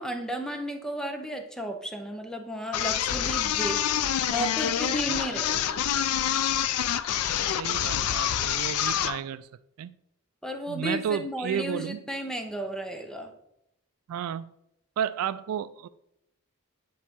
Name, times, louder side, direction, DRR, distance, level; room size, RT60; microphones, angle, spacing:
voice 1, 0.0-3.8 4.3-5.9 10.4-13.3, equal, 5° left, 5 dB, 0.7 m, -33 dB
sound 1, 2.7-9.2, left 10 dB, 80° left, 0.4 m, -27 dB
voice 2, 5.1-5.7 7.3-9.5 9.8-9.9 10.7-12.0 14.1-14.5 15.0-15.9, right 8 dB, 75° right, 13 dB, 0.3 m, -32 dB
10.0 x 4.1 x 3.6 m, 0.79 s
head